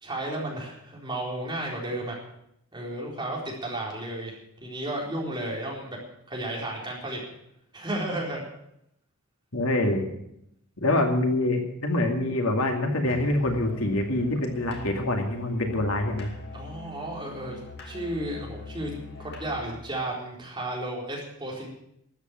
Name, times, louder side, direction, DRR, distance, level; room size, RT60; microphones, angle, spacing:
voice 1, 0.0-2.2 2.7-4.4 4.6-6.0 6.3-7.2 7.7-8.4 16.5-17.6 17.8-18.9 19.2-21.7, right 1 dB, 20° right, -3 dB, 4.0 m, -33 dB
voice 2, 9.5-10.1 10.8-16.3, left 1 dB, 75° left, 3 dB, 2.4 m, -25 dB
Musical instrument, 13.0-19.8, left 2 dB, 50° left, 2.5 m, -43 dB
13.0 x 8.5 x 9.1 m, 0.77 s
head